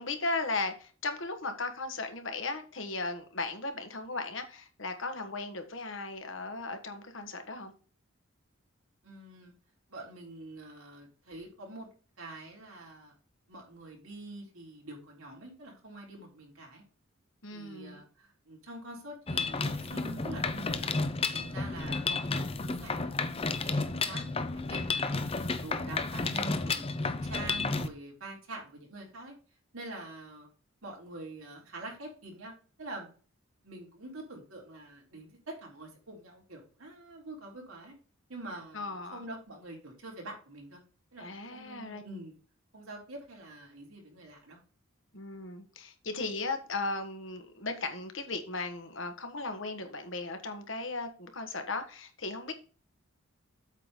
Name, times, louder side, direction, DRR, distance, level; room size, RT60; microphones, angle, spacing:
voice 1, 0.0-7.7 17.4-18.0 38.7-39.2 41.2-42.0 45.1-52.5, left 3 dB, 60° left, 1.5 m, -36 dB
voice 2, 9.0-9.5 9.9-11.9 12.2-13.1 13.5-16.8 17.5-20.9 21.3-25.2 25.6-29.3 29.7-30.5 30.8-33.1 33.6-37.9 38.3-40.8 41.1-41.2 41.5-42.3 42.7-44.6, right 2 dB, 80° right, 3.8 m, -45 dB
Mechanisms, 19.3-27.9, left 3 dB, 25° left, 0.6 m, -32 dB
8.3 x 3.9 x 6.6 m
head